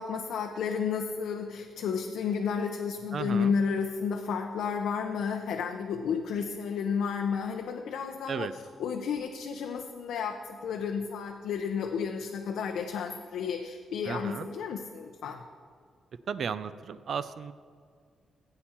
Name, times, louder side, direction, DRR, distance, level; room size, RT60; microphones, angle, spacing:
voice 1, 0.0-8.5 8.8-15.4, left 6 dB, 85° left, 3 dB, 0.7 m, -32 dB
voice 2, 3.1-3.5 8.3-8.5 14.1-14.5 16.3-17.5, right 6 dB, 50° right, 13 dB, 0.4 m, -34 dB
15.5 x 8.7 x 4.4 m, 2.1 s
wide cardioid pair, 155°, 0 cm